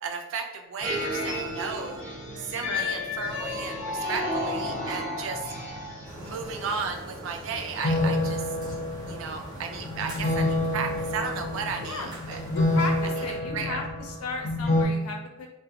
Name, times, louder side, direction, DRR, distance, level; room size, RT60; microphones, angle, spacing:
voice 1, 0.0-2.0 2.4-5.5 6.2-8.4 9.1-12.4 13.5-13.8, right 5 dB, 60° right, 4 dB, 0.3 m, -34 dB
sound 1, 0.8-14.8, left 2 dB, 35° left, 0.6 m, -29 dB
sound 2, 6.0-13.4, equal, 20° right, 0.7 m, -42 dB
voice 2, 11.8-12.1 12.5-15.5, left 3 dB, 90° left, 2 dB, 0.5 m, -35 dB
2.4 x 2.1 x 2.7 m, 1.0 s
head